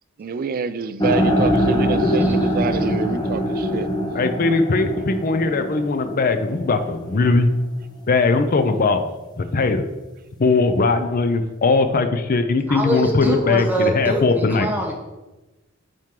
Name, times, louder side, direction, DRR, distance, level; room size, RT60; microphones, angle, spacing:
voice 1, 0.2-3.9, right 5 dB, 45° right, 13 dB, 0.3 m, -26 dB
sound 1, 1.0-7.1, equal, 20° left, 0.8 m, -23 dB
voice 2, 4.1-7.5 8.1-9.0 9.4-9.8 10.4-14.7, left 3 dB, 45° left, 9 dB, 0.5 m, -19 dB
voice 3, 12.7-14.9, right 1 dB, 10° right, -1 dB, 1.0 m, -23 dB
7.5 x 4.5 x 3.7 m, 1.1 s
head